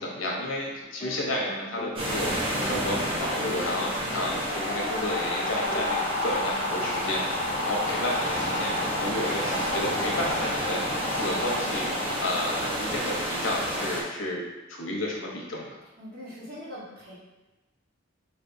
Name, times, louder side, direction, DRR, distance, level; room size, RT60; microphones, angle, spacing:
voice 1, 0.0-11.9 12.2-14.4 14.7-15.8, left 1 dB, 75° left, -2 dB, 1.0 m, -32 dB
sound 1, 0.8-2.0 2.2-7.0, left 1 dB, 25° left, 1.1 m, -41 dB
sound 2, 2.0-14.0, equal, 25° right, 0.8 m, -31 dB
sound 3, 4.4-13.5, left 2 dB, 45° left, 0.8 m, -32 dB
voice 2, 16.0-17.2, equal, 50° right, -8 dB, 1.4 m, -41 dB
4.8 x 3.4 x 2.7 m, 1.1 s
head